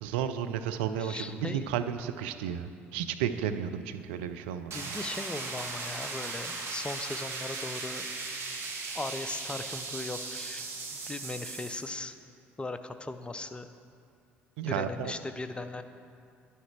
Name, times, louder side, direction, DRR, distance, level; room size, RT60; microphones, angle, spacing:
voice 1, 0.0-4.9 14.6-15.1, right 9 dB, 70° right, 9 dB, 0.4 m, -33 dB
voice 2, 0.9-1.7 4.7-8.1 8.9-10.7 10.9-12.2 12.6-13.7 14.6-15.8, left 2 dB, 15° left, 10 dB, 0.6 m, -38 dB
sound 1, 4.7-11.9, right 3 dB, 45° right, 1.5 m, -38 dB
10.0 x 9.8 x 3.2 m, 2.3 s
figure-of-eight pair, 50°, 6 cm